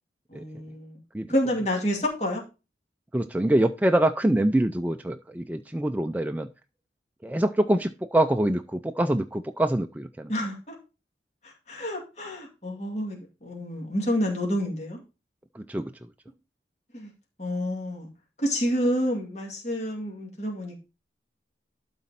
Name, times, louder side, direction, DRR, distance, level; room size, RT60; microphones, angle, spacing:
voice 1, 0.3-1.0 1.3-2.4 10.3-10.8 11.4-15.0 16.9-17.1 17.4-18.1 18.4-20.8, equal, 40° left, 0 dB, 2.4 m, -29 dB
voice 2, 3.1-6.5 7.2-10.3 15.5-15.9, right 1 dB, 10° right, 6 dB, 0.4 m, -25 dB
12.0 x 4.3 x 4.1 m, 0.30 s
head